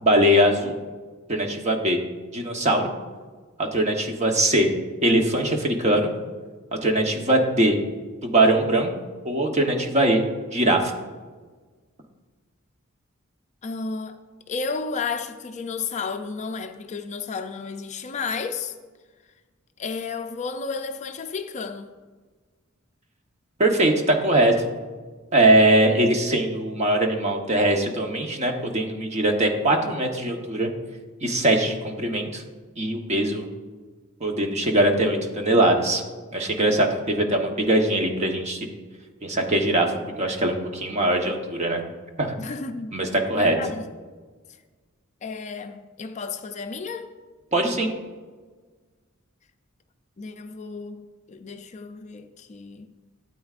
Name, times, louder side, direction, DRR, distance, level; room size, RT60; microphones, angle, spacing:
voice 1, 0.0-0.8 1.3-2.0 2.3-2.9 3.6-4.7 5.0-6.1 6.8-7.8 8.2-8.9 9.2-10.2 10.5-10.9 23.6-24.5 25.3-30.7 31.2-32.4 32.8-33.4 34.2-36.0 36.3-38.7 39.2-41.8 42.2-42.4 42.9-43.6 47.5-47.9, right 1 dB, 35° right, 1.0 m, -21 dB
voice 2, 13.6-14.2 14.5-18.7 19.8-21.9 42.4-43.0 43.3-43.9 45.2-47.1 50.2-52.9, left 4 dB, 35° left, 0.4 m, -32 dB
13.0 x 8.5 x 2.4 m
head